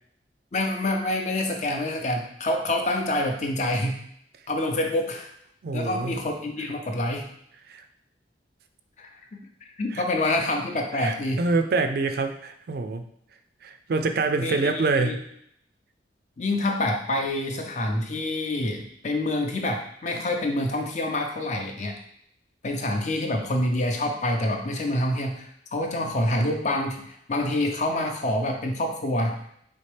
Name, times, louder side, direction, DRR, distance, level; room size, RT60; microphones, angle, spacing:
voice 1, 0.5-4.0 4.5-5.3 5.7-7.3 9.0-9.4 9.8-11.4 14.4-15.2 16.4-22.0 22.6-29.4, left 1 dB, 40° left, 3 dB, 0.6 m, -27 dB
voice 2, 5.6-6.2 7.7-7.8 9.9-10.0 10.9-13.1 13.6-15.2, right 3 dB, 55° right, 7 dB, 0.4 m, -26 dB
4.2 x 3.4 x 3.3 m, 0.70 s
head